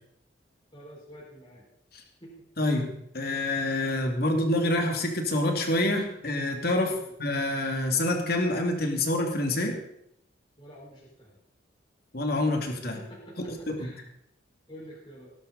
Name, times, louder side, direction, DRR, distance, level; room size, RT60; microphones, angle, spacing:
voice 1, 0.7-1.6 2.2-2.9 6.8-7.1 10.6-11.4 12.7-14.0 14.7-15.3, equal, 25° left, -6 dB, 5.2 m, -48 dB
voice 2, 2.6-6.9 7.2-9.8 12.1-13.0 13.7-13.9, left 1 dB, 55° left, 3 dB, 2.6 m, -27 dB
18.0 x 12.0 x 4.2 m, 0.75 s
head